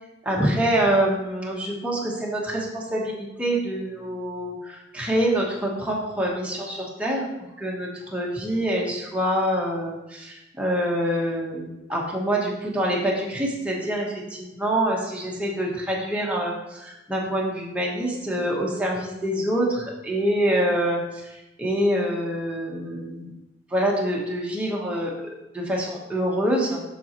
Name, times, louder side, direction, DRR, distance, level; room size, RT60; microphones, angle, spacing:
voice 1, 0.2-7.3 7.6-23.3 23.7-25.1 25.5-26.8, right 1 dB, 5° right, -3 dB, 1.0 m, -26 dB
7.0 x 5.8 x 3.0 m, 0.97 s
head